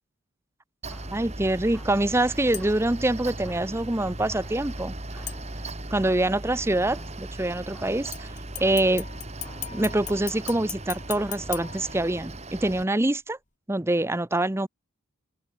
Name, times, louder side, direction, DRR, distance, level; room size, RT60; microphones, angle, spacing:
Mechanical fan, 0.8-12.8, right 2 dB, 30° right, 2.7 m, -38 dB
sound 1, 0.9-12.8, equal, 5° left, 6.0 m, -53 dB
voice 1, 1.1-4.9 5.9-8.3 8.6-9.1 9.7-13.4 13.7-14.7, right 1 dB, 10° right, 0.6 m, -25 dB
sound 2, 2.5-3.0 5.3-6.0 8.1-12.5 12.9-13.0, left 11 dB, 35° left, 3.5 m, -39 dB
open air
head